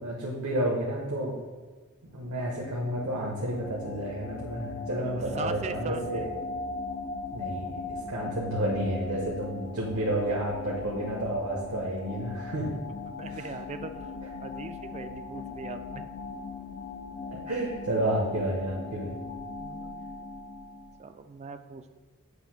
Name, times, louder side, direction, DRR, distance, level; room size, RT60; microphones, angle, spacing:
voice 1, 0.0-1.3 2.1-6.3 7.3-7.8 8.1-12.7 13.3-13.5 17.3-19.1, right 1 dB, 75° right, -3 dB, 1.0 m, -30 dB
sound 1, 2.2-21.1, left 4 dB, 40° left, 0.4 m, -39 dB
voice 2, 5.1-6.3 12.9-14.1 14.4-16.1 19.6-20.0 21.0-21.9, right 4 dB, 30° right, 9 dB, 0.3 m, -40 dB
8.0 x 2.7 x 5.7 m, 1.3 s
head